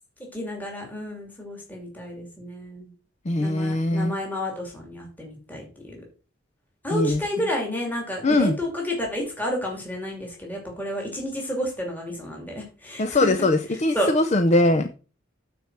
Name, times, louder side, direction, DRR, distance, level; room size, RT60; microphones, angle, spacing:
voice 1, 0.3-2.9 3.4-6.0 6.8-13.3 13.9-14.1, equal, 10° left, -1 dB, 2.6 m, -31 dB
voice 2, 3.3-4.2 6.9-7.2 8.2-8.6 13.0-14.9, left 2 dB, 35° left, 9 dB, 0.6 m, -21 dB
9.0 x 4.4 x 5.9 m, 0.35 s
head